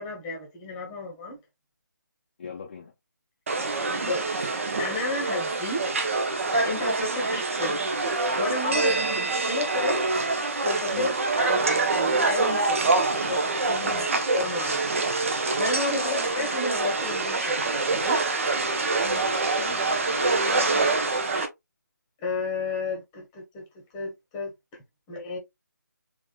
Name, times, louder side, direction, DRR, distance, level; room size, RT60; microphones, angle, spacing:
voice 1, 0.0-1.4 4.1-5.8 6.5-7.8 8.4-9.2 9.4-10.0 10.6-14.0 14.3-14.9 15.6-18.2 22.2-23.6 23.9-24.5 25.1-25.4, left 3 dB, 15° left, 1.1 m, -32 dB
voice 2, 2.4-2.9 8.8-9.0 10.9-11.1 13.8-14.2 15.9-16.0 19.0-21.3, left 6 dB, 30° left, 0.7 m, -39 dB
sound 1, 3.5-21.5, right 3 dB, 40° right, 0.8 m, -25 dB
3.6 x 3.5 x 2.3 m
figure-of-eight pair, 150°, 11 cm